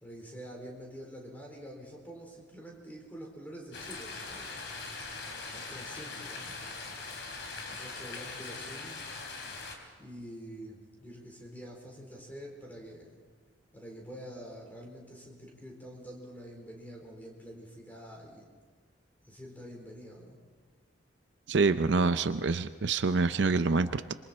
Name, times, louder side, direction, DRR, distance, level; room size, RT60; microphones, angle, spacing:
voice 1, 0.0-4.7 5.5-7.1 7.7-9.0 10.0-13.2 13.7-18.5 19.3-20.4, equal, 10° left, -1 dB, 4.2 m, -47 dB
sound 1, 3.7-9.7, left 3 dB, 65° left, 3.3 m, -41 dB
voice 2, 21.5-24.1, right 4 dB, 65° right, 11 dB, 0.6 m, -26 dB
26.5 x 23.0 x 4.4 m, 1.5 s
head